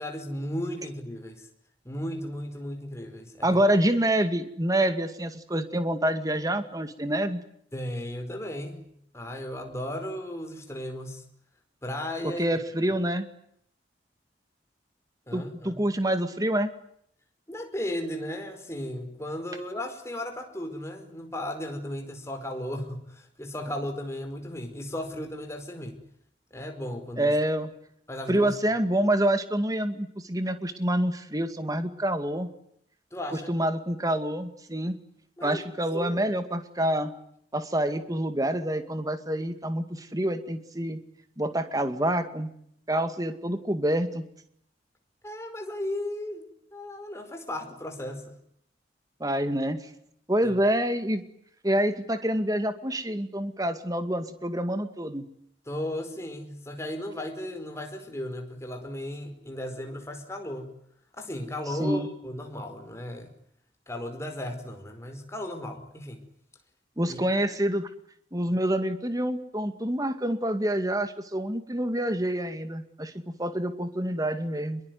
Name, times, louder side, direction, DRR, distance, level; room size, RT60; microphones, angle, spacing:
voice 1, 0.0-1.5 1.8-3.5 7.7-8.9 9.1-11.2 11.8-12.4 15.3-15.8 17.5-26.0 26.5-27.3 28.1-28.5 33.1-33.5 35.4-35.6 35.9-36.2 45.2-48.3 50.4-50.5 55.7-60.7 61.2-63.3 63.9-66.2 67.1-67.2, left 1 dB, 15° left, 4 dB, 4.9 m, -35 dB
voice 2, 3.4-7.4 12.2-13.3 15.3-16.7 27.2-27.7 28.3-32.5 33.3-35.0 35.4-37.1 37.5-41.0 41.4-42.5 42.9-44.2 49.2-49.8 50.3-51.2 51.6-55.2 61.8-62.1 67.0-67.9 68.3-73.1 73.4-74.8, right 1 dB, 20° right, 9 dB, 2.2 m, -27 dB
26.5 x 22.5 x 9.5 m, 0.70 s
head